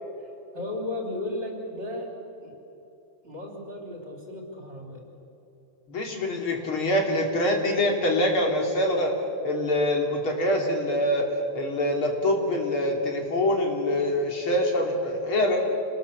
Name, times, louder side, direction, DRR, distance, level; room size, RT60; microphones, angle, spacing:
voice 1, 0.5-2.2 2.4-2.5 3.2-5.0, left 2 dB, 30° right, 0 dB, 4.0 m, -34 dB
voice 2, 5.9-9.1 9.4-11.3 11.5-15.6, left 1 dB, 70° left, 1 dB, 3.7 m, -25 dB
26.5 x 20.5 x 7.0 m, 2.9 s
omnidirectional pair, 2.4 m